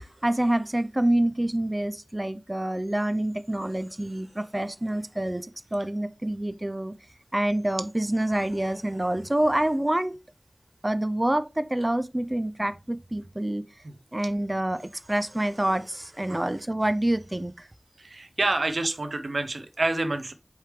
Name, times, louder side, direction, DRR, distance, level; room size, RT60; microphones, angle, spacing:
voice 1, 0.0-6.9 7.3-10.1 10.8-13.7 14.1-17.7, right 1 dB, 25° right, 0.4 m, -27 dB
voice 2, 18.0-20.3, right 2 dB, 90° right, 0.6 m, -28 dB
4.7 x 3.2 x 3.2 m
wide cardioid pair, 45°, 0 cm